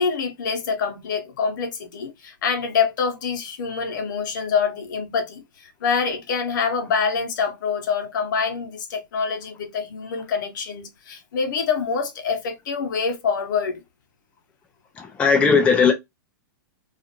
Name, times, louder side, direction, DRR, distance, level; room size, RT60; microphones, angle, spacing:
voice 1, 0.0-13.8, left 5 dB, 65° left, 0.9 m, -25 dB
voice 2, 15.0-15.9, left 5 dB, 10° left, 0.4 m, -17 dB
2.4 x 2.4 x 2.8 m
hypercardioid pair, 145°, 11 cm